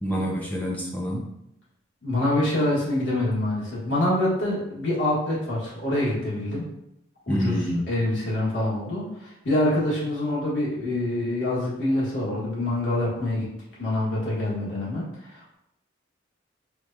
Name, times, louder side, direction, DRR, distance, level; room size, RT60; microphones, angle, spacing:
voice 1, 0.0-1.2 7.3-7.8, equal, 10° left, -3 dB, 0.4 m, -27 dB
voice 2, 2.0-6.7 7.3-7.6 7.9-13.5 13.8-15.6, left 1 dB, 75° left, -7 dB, 1.5 m, -25 dB
4.5 x 2.3 x 2.6 m, 0.82 s
head